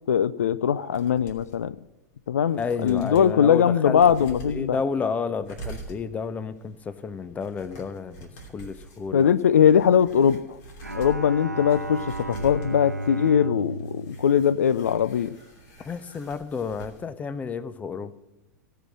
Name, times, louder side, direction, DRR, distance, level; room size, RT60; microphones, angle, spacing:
voice 1, 0.1-1.7 2.3-4.8 9.1-10.6 10.9-15.3, left 8 dB, 65° left, 17 dB, 0.4 m, -21 dB
sound 1, 0.9-1.6 2.1-2.2 2.5-3.3 3.9-17.0 17.3-17.4, right 3 dB, 45° left, 3.0 m, -46 dB
voice 2, 2.6-4.0 4.5-9.3 15.8-18.1, left 5 dB, 15° left, 15 dB, 0.7 m, -31 dB
Bowed string instrument, 10.8-15.3, right 2 dB, 90° right, 0.5 m, -34 dB
17.0 x 5.7 x 7.5 m, 0.98 s
figure-of-eight pair, 95°, 9 cm